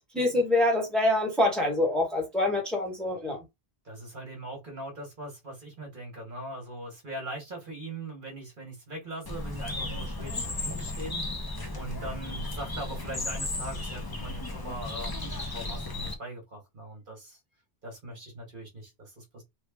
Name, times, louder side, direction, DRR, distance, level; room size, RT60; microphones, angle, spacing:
voice 1, 0.1-3.4, left 1 dB, ahead, 1.1 m, -25 dB
voice 2, 3.8-17.4 17.8-19.4, right 1 dB, 50° right, 1.2 m, -41 dB
Bird, 9.2-16.1, left 2 dB, 25° left, 0.5 m, -35 dB
3.2 x 2.3 x 3.4 m
omnidirectional pair, 1.2 m